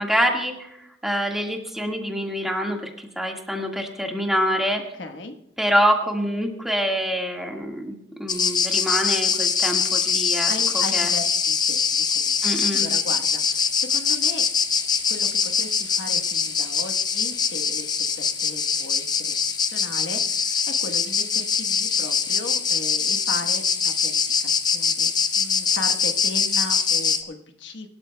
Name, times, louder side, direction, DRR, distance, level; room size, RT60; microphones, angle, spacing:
voice 1, 0.0-4.8 5.6-11.1 12.4-12.9, equal, ahead, 1 dB, 1.7 m, -26 dB
voice 2, 4.9-5.4 10.5-14.4 15.1-19.4 19.6-27.9, left 2 dB, 85° left, 5 dB, 1.3 m, -37 dB
sound 1, 8.3-27.2, left 6 dB, 25° left, 0.7 m, -23 dB
24.5 x 12.5 x 2.3 m, 0.88 s
head